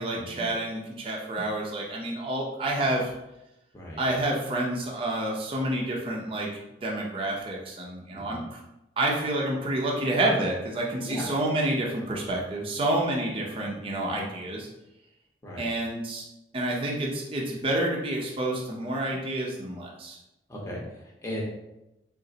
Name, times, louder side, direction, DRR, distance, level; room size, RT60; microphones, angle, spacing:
voice 1, 0.0-3.1 4.0-6.5 6.8-8.6 9.0-14.7 15.6-16.3 16.5-20.2, right 1 dB, 30° right, -2 dB, 0.6 m, -29 dB
voice 2, 20.5-21.4, equal, 15° left, -4 dB, 0.8 m, -37 dB
3.8 x 2.5 x 3.9 m, 0.92 s
head